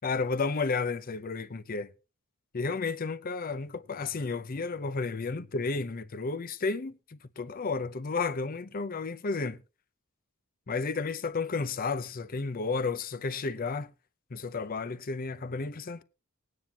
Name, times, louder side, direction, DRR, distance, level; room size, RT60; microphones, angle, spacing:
voice 1, 0.0-1.9 2.5-9.6 10.7-13.9 14.3-16.0, left 4 dB, 40° left, 0.6 m, -32 dB
19.5 x 9.4 x 2.9 m
head